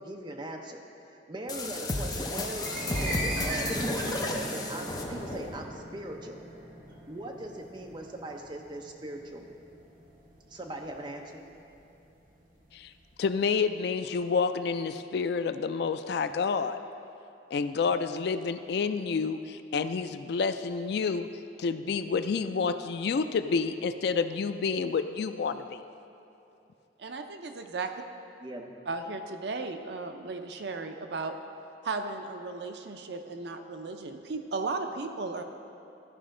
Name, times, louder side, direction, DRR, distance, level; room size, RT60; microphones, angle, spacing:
voice 1, 0.0-6.4 7.1-9.5 10.5-11.4 28.4-28.8, right 1 dB, 25° right, 2 dB, 0.7 m, -40 dB
sound 1, 1.5-5.6, left 2 dB, 20° left, 0.6 m, -33 dB
sound 2, 2.6-12.8, right 1 dB, 50° right, 1.0 m, -40 dB
voice 2, 13.2-16.8 17.5-21.3 21.6-25.8, left 5 dB, 65° left, 10 dB, 0.3 m, -29 dB
voice 3, 27.0-27.9 28.9-31.3 31.8-35.4, right 3 dB, 65° right, 6 dB, 0.5 m, -35 dB
13.5 x 5.0 x 3.7 m, 2.9 s
head